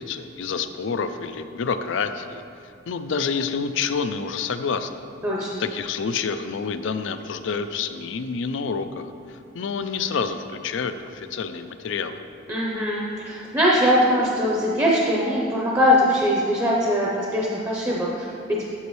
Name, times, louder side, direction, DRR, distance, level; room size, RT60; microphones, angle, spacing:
voice 1, 0.0-2.4 2.9-4.9 5.6-12.2, left 5 dB, 65° left, 10 dB, 0.4 m, -28 dB
voice 2, 5.2-5.6 12.5-18.7, equal, 15° right, -4 dB, 0.7 m, -22 dB
8.2 x 7.5 x 3.1 m, 2.5 s
head